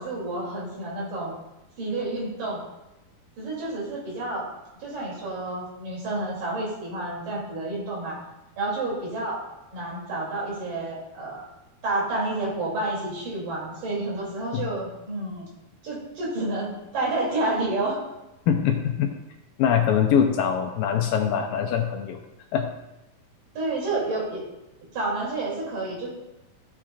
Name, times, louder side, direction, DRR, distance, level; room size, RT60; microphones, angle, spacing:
voice 1, 0.0-1.3 1.8-2.6 3.4-4.5 4.8-8.2 8.6-9.4 9.7-11.4 11.8-15.5 15.8-18.0 23.5-24.4 24.9-26.1, right 2 dB, 60° right, -5 dB, 4.5 m, -29 dB
voice 2, 18.5-19.1 19.6-22.2 22.5-22.7, left 8 dB, 80° left, 3 dB, 2.2 m, -23 dB
14.5 x 7.1 x 2.5 m, 0.95 s
omnidirectional pair, 4.4 m